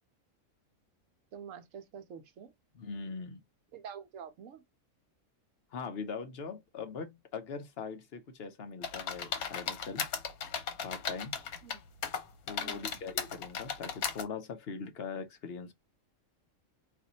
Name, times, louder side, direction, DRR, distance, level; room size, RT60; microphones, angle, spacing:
voice 1, 1.3-2.5 3.7-4.6 11.6-11.8 12.6-13.0, right 7 dB, 70° right, 1.0 m, -47 dB
voice 2, 2.7-3.4 5.7-10.1 10.8-11.3 12.5-15.7, left 5 dB, 50° left, 0.9 m, -41 dB
sound 1, 8.8-11.8 12.0-14.2, left 7 dB, 85° left, 1.3 m, -36 dB
4.2 x 2.6 x 4.1 m
omnidirectional pair, 1.5 m